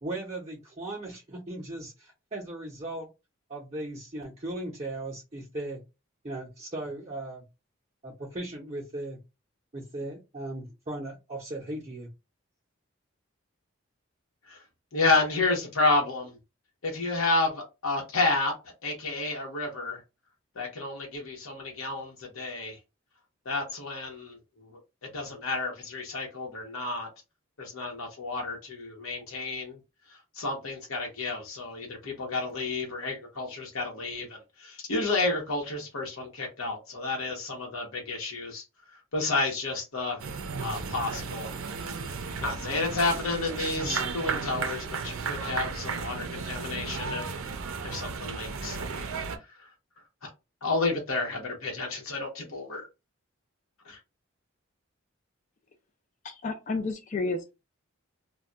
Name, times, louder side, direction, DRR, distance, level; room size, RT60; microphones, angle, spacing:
voice 1, 0.0-3.1 3.5-5.8 6.2-7.4 8.0-9.2 9.7-12.1, right 1 dB, 30° right, 0.6 m, -37 dB
voice 2, 14.9-16.4 16.8-18.5 18.8-20.0 20.6-22.8 23.5-24.4 25.1-27.1 27.6-29.8 30.3-38.6 39.1-40.2 40.6-41.5 42.0-47.2 47.8-48.9 49.6-49.7 50.2-50.3 50.6-52.9, left 3 dB, 80° left, 0.9 m, -30 dB
sound 1, 40.2-49.4, right 5 dB, 75° right, 0.5 m, -34 dB
voice 3, 56.2-57.5, left 3 dB, 35° left, 0.4 m, -31 dB
2.2 x 2.2 x 3.8 m
head